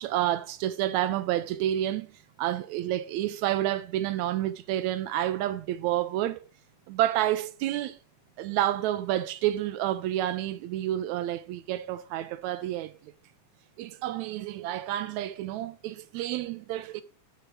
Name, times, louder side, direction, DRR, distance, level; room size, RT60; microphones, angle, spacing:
voice 1, 0.0-2.1 2.4-6.5 6.9-8.0 8.4-13.0 13.8-17.0, right 13 dB, 80° right, 1.8 m, -29 dB
7.2 x 6.9 x 4.6 m
omnidirectional pair, 3.5 m